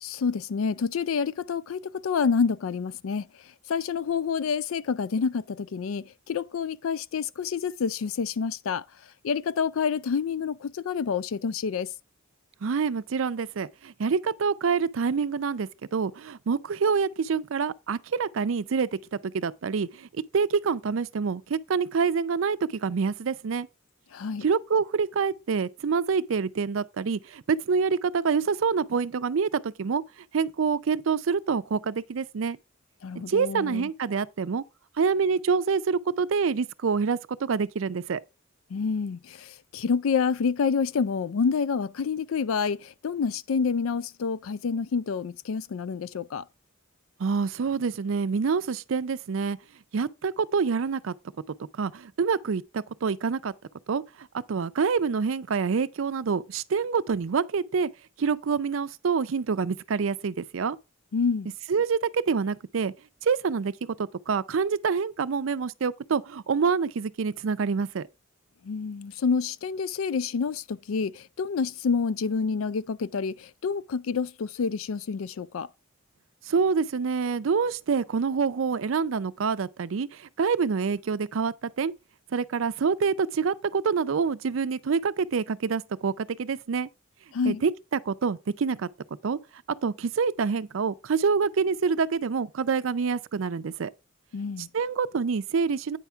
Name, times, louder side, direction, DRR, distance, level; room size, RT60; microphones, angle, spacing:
voice 1, 0.0-3.3 3.7-8.8 9.2-11.9 24.1-24.4 33.0-33.9 38.7-46.4 61.1-61.5 68.6-75.7 87.3-87.6 94.3-94.7, left 5 dB, 90° left, 0.4 m, -28 dB
voice 2, 12.6-23.7 24.4-30.0 30.3-32.6 33.3-34.6 35.0-38.2 47.2-49.6 49.9-51.1 51.8-53.5 53.9-57.9 58.2-60.8 61.7-62.9 63.2-63.7 64.0-68.1 76.5-81.9 82.3-86.9 87.5-87.7 88.0-88.9 89.2-89.4 89.8-93.9 94.7-96.0, right 5 dB, 75° right, 0.5 m, -26 dB
9.1 x 5.7 x 3.4 m
head